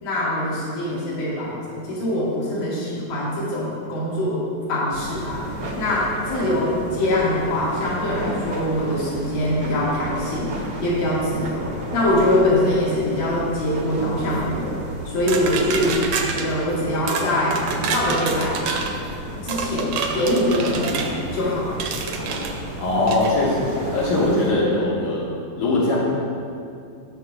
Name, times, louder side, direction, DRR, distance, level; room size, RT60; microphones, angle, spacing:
voice 1, 0.0-4.4 4.7-16.0 16.3-18.6 19.4-21.9, left 1 dB, 65° left, -7 dB, 3.2 m, -23 dB
sound 1, 4.9-24.5, equal, 60° right, 0.9 m, -32 dB
sound 2, 15.3-16.5 17.1-17.3 17.5-18.9 19.5-21.1 21.8-22.5 23.1-23.3, right 5 dB, 85° right, 2.3 m, -28 dB
voice 2, 22.8-25.3 25.6-26.0, left 2 dB, 85° left, -8 dB, 3.2 m, -21 dB
17.0 x 6.6 x 2.7 m, 2.4 s
omnidirectional pair, 3.5 m